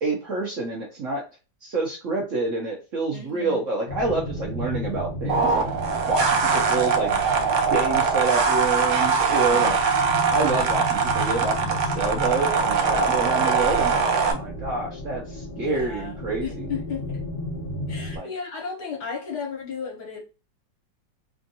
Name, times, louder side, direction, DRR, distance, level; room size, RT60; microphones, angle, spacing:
voice 1, 0.0-1.2 1.6-5.7 6.1-7.2 7.7-9.8 10.3-16.5 18.1-18.3, right 3 dB, 55° right, -1 dB, 0.9 m, -27 dB
voice 2, 3.1-3.6 6.4-6.7 9.5-10.0 15.6-17.2 17.9-20.2, left 6 dB, 65° left, 0 dB, 1.5 m, -35 dB
sound 1, 3.9-18.2, left 1 dB, 45° left, 0.8 m, -34 dB
sound 2, 5.3-14.3, right 5 dB, 80° right, 0.6 m, -22 dB
3.4 x 2.4 x 2.7 m, 0.32 s
omnidirectional pair, 2.0 m